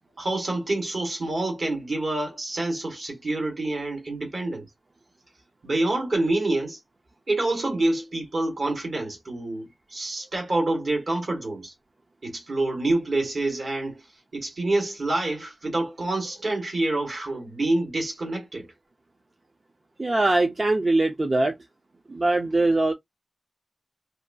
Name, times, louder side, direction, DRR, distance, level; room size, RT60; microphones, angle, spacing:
voice 1, 0.2-4.7 5.6-6.8 7.3-11.7 12.2-14.0 14.3-18.7, right 2 dB, 65° right, 1.5 m, -27 dB
voice 2, 20.0-21.6 22.1-22.9, right 2 dB, 40° right, 0.5 m, -22 dB
2.6 x 2.3 x 2.5 m
wide cardioid pair, 95°, 0 cm